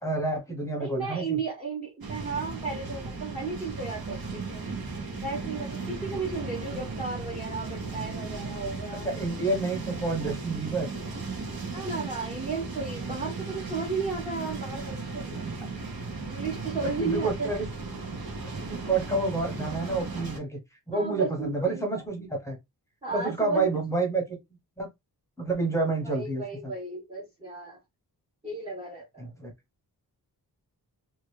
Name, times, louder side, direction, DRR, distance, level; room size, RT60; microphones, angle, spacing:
voice 1, 0.0-1.4 9.0-10.9 16.8-17.7 18.4-20.6 20.9-22.6 23.1-24.4 24.8-24.9 25.4-26.7 29.2-29.5, right 3 dB, 10° left, 0.9 m, -29 dB
voice 2, 0.8-4.6 5.2-9.1 11.7-15.6 16.3-17.5 20.9-21.9 23.0-23.7 26.0-27.8 28.4-29.2, right 4 dB, 15° right, 0.9 m, -34 dB
sound 1, 2.0-20.4, right 3 dB, 65° right, 1.2 m, -36 dB
2.9 x 2.4 x 3.2 m
wide cardioid pair, 135°, 39 cm